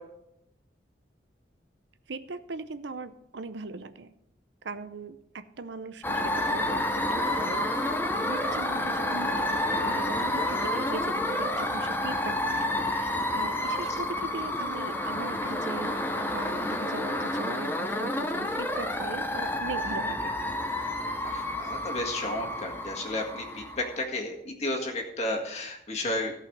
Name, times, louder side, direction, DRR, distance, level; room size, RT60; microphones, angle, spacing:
voice 1, 2.1-4.1 4.6-20.3, right 3 dB, 75° right, 12 dB, 0.7 m, -40 dB
sound 1, 6.0-24.0, left 1 dB, 10° left, 0.7 m, -30 dB
voice 2, 21.2-26.3, left 1 dB, 35° left, 1 dB, 1.9 m, -32 dB
16.5 x 5.7 x 5.2 m, 0.81 s
head